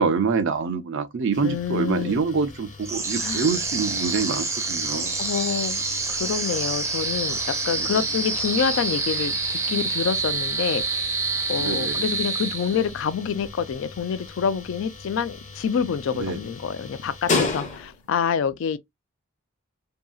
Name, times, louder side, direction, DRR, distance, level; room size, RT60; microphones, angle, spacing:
voice 1, 0.0-5.2 7.8-7.9 11.6-12.0 16.1-16.4, right 5 dB, 60° right, 0.5 m, -26 dB
sound 1, 1.3-18.2, left 3 dB, 35° left, 0.7 m, -36 dB
voice 2, 1.4-2.2 3.2-3.5 5.2-5.8 6.1-11.2 11.5-18.8, left 7 dB, 65° left, 0.3 m, -27 dB
sound 2, 2.8-13.1, right 3 dB, 15° right, 0.5 m, -27 dB
2.7 x 2.7 x 2.2 m
head